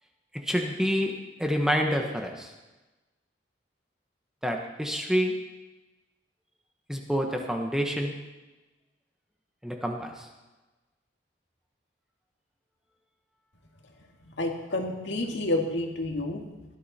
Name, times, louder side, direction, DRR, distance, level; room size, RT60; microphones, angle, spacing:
voice 1, 0.4-1.1 1.4-2.5 4.4-5.3 6.9-8.1 9.6-10.3, equal, 5° right, 2 dB, 1.1 m, -27 dB
voice 2, 14.4-16.6, left 2 dB, 75° left, 2 dB, 2.0 m, -29 dB
18.0 x 12.5 x 4.3 m, 1.1 s
head